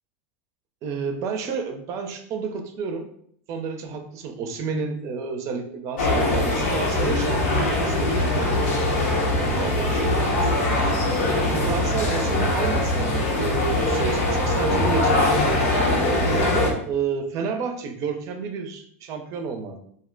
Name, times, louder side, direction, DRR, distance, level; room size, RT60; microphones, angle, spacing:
voice 1, 0.8-3.1 3.5-8.8 9.6-10.8 11.5-15.8 16.4-19.8, right 5 dB, 45° right, 6 dB, 0.5 m, -31 dB
sound 1, 6.0-16.7, left 1 dB, 85° left, 0.9 m, -22 dB
2.6 x 2.1 x 3.7 m, 0.65 s
supercardioid pair, 125°, 7 cm